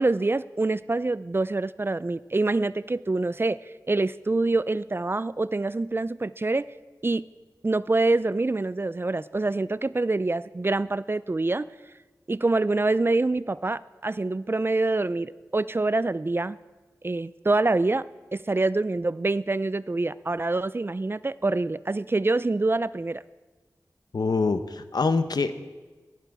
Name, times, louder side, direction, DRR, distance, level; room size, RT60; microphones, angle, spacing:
voice 1, 0.0-3.6 3.9-6.6 7.0-7.3 7.6-11.7 12.3-16.6 17.0-18.0 18.3-23.2, right 2 dB, 35° right, 17 dB, 0.4 m, -25 dB
voice 2, 24.1-25.5, left 4 dB, 75° left, 10 dB, 0.8 m, -25 dB
14.5 x 11.0 x 4.7 m, 1.3 s
wide cardioid pair, 50°, 7 cm